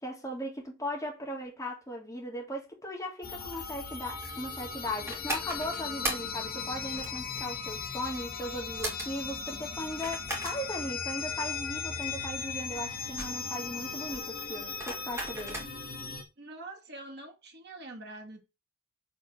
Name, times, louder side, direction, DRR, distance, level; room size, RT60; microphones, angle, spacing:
voice 1, 0.0-15.7, equal, 15° left, 2.2 m, -38 dB
sound 1, 3.2-16.2, left 5 dB, 45° left, 1.2 m, -38 dB
sound 2, 3.5-16.0, right 1 dB, 15° right, 2.5 m, -39 dB
voice 2, 16.4-18.4, right 2 dB, 55° right, 1.7 m, -45 dB
4.8 x 4.1 x 5.8 m
head